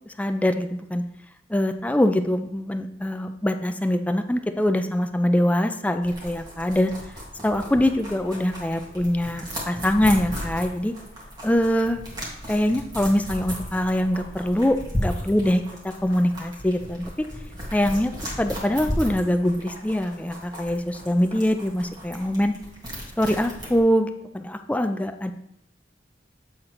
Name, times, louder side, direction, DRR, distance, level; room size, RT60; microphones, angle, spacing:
voice 1, 0.2-1.0 1.5-6.9 7.4-10.9 11.4-12.0 12.5-15.6 16.0-17.1 17.7-18.1 18.4-22.5 23.2-25.3, left 1 dB, 10° left, 7 dB, 0.4 m, -23 dB
sound 1, 6.0-23.8, equal, 25° right, 1.8 m, -35 dB
8.0 x 3.8 x 4.4 m, 0.76 s
head